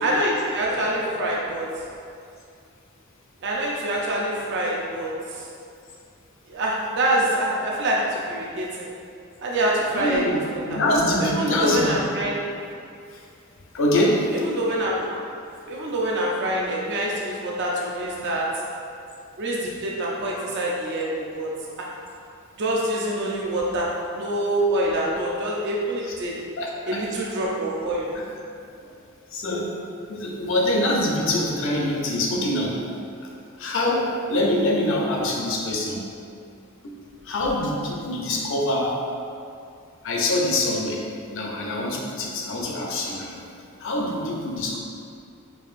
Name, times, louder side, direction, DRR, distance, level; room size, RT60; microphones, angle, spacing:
voice 1, 0.0-1.7 3.4-5.1 6.5-8.9 9.4-10.2 10.5-10.6 11.2-12.4 14.5-14.9 15.6-18.5 19.4-21.9 22.6-26.4 26.9-28.1, right 1 dB, 55° right, -3 dB, 0.4 m, -25 dB
voice 2, 9.9-12.0 13.1-13.2 13.7-14.3 20.4-20.5 26.0-26.1 26.6-27.0 28.1-28.3 29.3-29.7 30.1-32.8 33.6-36.0 36.8-36.9 37.2-39.0 40.0-41.0 41.3-43.4 43.8-44.8, left 1 dB, 65° left, -1 dB, 0.6 m, -24 dB
4.7 x 2.5 x 2.5 m, 2.4 s
head